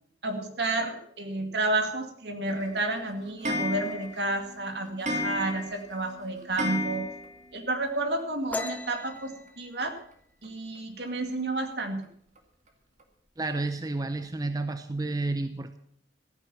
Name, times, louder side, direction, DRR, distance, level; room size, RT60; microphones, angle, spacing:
voice 1, 0.2-7.1 7.5-9.9 10.4-12.0, right 2 dB, 70° right, 5 dB, 2.2 m, -31 dB
Clock, 2.5-7.6 7.9-8.0 8.2-8.3 8.5-8.6 9.8-9.9 10.4-10.5 11.1-11.2 11.7-11.8 12.4-12.5 13.0-13.1, left 1 dB, 45° right, 2.1 m, -34 dB
sound 1, 8.5-11.9 12.3-12.6 13.0-13.5 13.8-14.5, left 2 dB, 10° left, 0.8 m, -39 dB
voice 2, 13.4-15.8, right 2 dB, 20° right, 9 dB, 0.6 m, -31 dB
14.0 x 9.2 x 7.1 m, 0.66 s
head